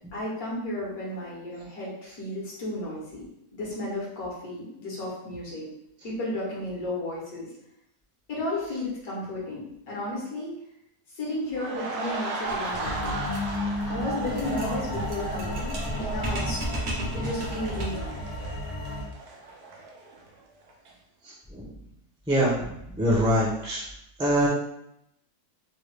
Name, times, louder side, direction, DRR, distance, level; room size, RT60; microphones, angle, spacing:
voice 1, 0.1-5.7 6.0-7.5 8.3-10.5 11.1-13.2 13.9-16.6 17.0-18.1, left 1 dB, 65° left, -5 dB, 1.5 m, -33 dB
sound 1, 11.5-20.4 20.7-20.9, right 2 dB, 75° right, 1.1 m, -36 dB
sound 2, 12.4-18.1, right 1 dB, 50° right, 0.9 m, -35 dB
sound 3, 12.8-19.1, left 1 dB, 90° left, 1.2 m, -34 dB
voice 2, 23.0-23.8 24.2-24.5, equal, 5° right, -6 dB, 0.5 m, -23 dB
3.7 x 2.3 x 3.2 m, 0.79 s
omnidirectional pair, 1.7 m